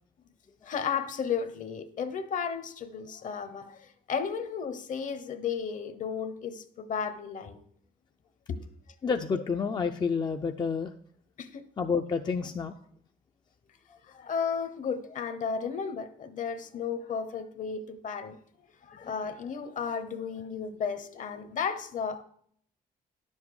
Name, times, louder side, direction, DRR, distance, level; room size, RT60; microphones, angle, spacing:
voice 1, 0.6-7.6 8.5-8.6 11.4-11.6 14.0-18.4 18.8-22.2, left 6 dB, 50° left, 1.0 m, -34 dB
voice 2, 9.0-10.9 11.8-12.7 19.0-19.1, left 5 dB, 25° left, 0.5 m, -29 dB
10.5 x 7.4 x 4.8 m
cardioid pair, 120°, 17 cm